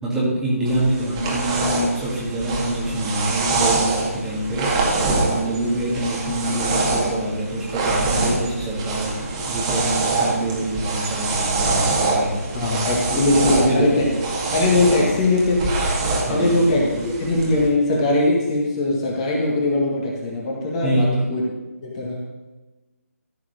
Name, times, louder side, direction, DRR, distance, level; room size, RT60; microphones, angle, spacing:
voice 1, 0.0-4.8 5.3-12.5 13.4-14.1 14.9-15.0 16.2-17.0 20.8-21.2, right 1 dB, 5° right, -7 dB, 2.0 m, -26 dB
sound 1, 0.7-17.7, right 3 dB, 20° right, 2.1 m, -24 dB
voice 2, 12.5-14.0 14.5-15.8 16.3-16.9 17.2-21.4 21.8-22.2, left 2 dB, 20° left, -2 dB, 1.9 m, -20 dB
14.5 x 4.9 x 6.5 m, 1.1 s
figure-of-eight pair, 150°, 8 cm